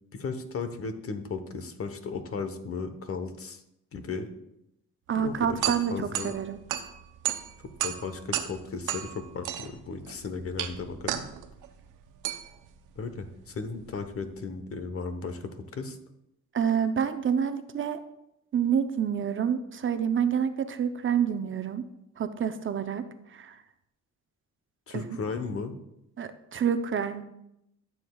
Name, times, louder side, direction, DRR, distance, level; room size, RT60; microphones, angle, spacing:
voice 1, 0.1-3.6 3.9-4.3 5.1-5.6 5.9-6.3 7.8-11.2 13.0-16.0 24.9-25.7, left 4 dB, 50° left, 9 dB, 1.1 m, -35 dB
voice 2, 5.1-6.6 16.5-18.0 18.5-21.8 22.2-23.0 23.3-23.6 24.9-25.2 26.2-27.2, right 8 dB, 40° right, 10 dB, 0.6 m, -28 dB
sound 1, 5.1-14.3, right 11 dB, 90° right, 0.7 m, -35 dB
13.5 x 7.1 x 2.3 m, 0.83 s
cardioid pair, 90°, 30 cm